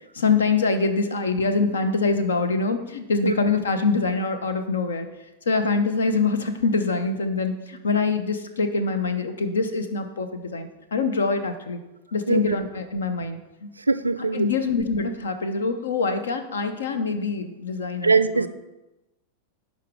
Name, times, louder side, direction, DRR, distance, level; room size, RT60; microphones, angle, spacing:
voice 1, 0.1-5.1 5.5-11.8 12.1-13.7 14.3-18.5, left 4 dB, 70° left, 9 dB, 0.8 m, -24 dB
voice 2, 13.9-14.5 18.0-18.5, right 4 dB, 80° right, 13 dB, 0.4 m, -21 dB
10.5 x 4.1 x 4.7 m, 1.0 s
figure-of-eight pair, 90°, 0 cm